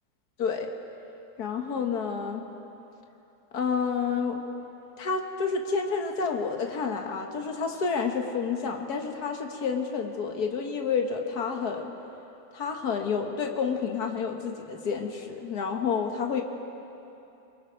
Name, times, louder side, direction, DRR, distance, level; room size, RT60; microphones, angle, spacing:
voice 1, 0.4-0.7 1.4-2.4 3.5-4.4 5.0-11.9 12.5-16.4, left 5 dB, 80° left, 3 dB, 2.0 m, -29 dB
26.5 x 23.5 x 4.7 m, 2.9 s
omnidirectional pair, 1.6 m